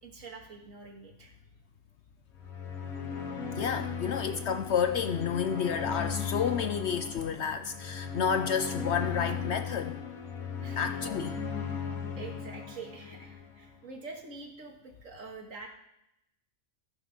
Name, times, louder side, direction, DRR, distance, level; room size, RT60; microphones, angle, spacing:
voice 1, 0.0-1.4 4.2-4.3 10.6-11.3 12.1-15.7, right 4 dB, 65° right, 2 dB, 2.1 m, -46 dB
sound 1, 2.3-13.7, left 6 dB, 80° left, 1.8 m, -37 dB
voice 2, 3.5-10.0 10.8-11.4, left 7 dB, 60° left, 8 dB, 0.8 m, -30 dB
14.0 x 5.8 x 6.0 m, 0.85 s
omnidirectional pair, 1.5 m